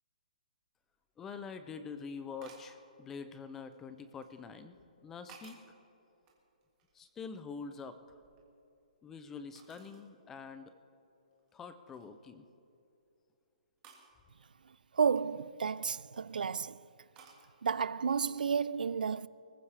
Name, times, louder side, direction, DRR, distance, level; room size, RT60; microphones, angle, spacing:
sound 1, 0.9-1.0 2.4-2.8 3.5-4.3 4.9-5.8 6.2-7.3 7.6-8.9 9.6-10.1 10.6-10.7 11.3-11.5 11.9-12.3 13.8-14.1 15.8-16.3 17.2-17.4, right 5 dB, 15° right, 1.6 m, -58 dB
voice 1, 1.2-4.8 5.0-5.6 6.9-8.0 9.0-10.7 11.5-12.4, left 5 dB, 5° left, 0.3 m, -45 dB
voice 2, 14.9-16.8 17.6-19.3, right 6 dB, 90° right, 0.4 m, -31 dB
23.5 x 15.0 x 3.3 m
hypercardioid pair, 180°, 5 cm